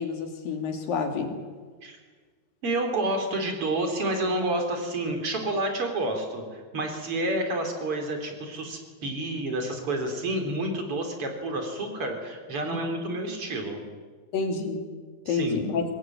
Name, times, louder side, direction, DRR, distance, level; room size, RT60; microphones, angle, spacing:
voice 1, 0.0-1.4 12.6-12.8 14.3-14.8 15.3-15.8, left 4 dB, 65° left, 4 dB, 4.3 m, -28 dB
voice 2, 2.6-13.8 15.3-15.6, right 1 dB, 35° right, 4 dB, 4.2 m, -29 dB
24.0 x 19.5 x 9.2 m, 1.5 s
omnidirectional pair, 4.5 m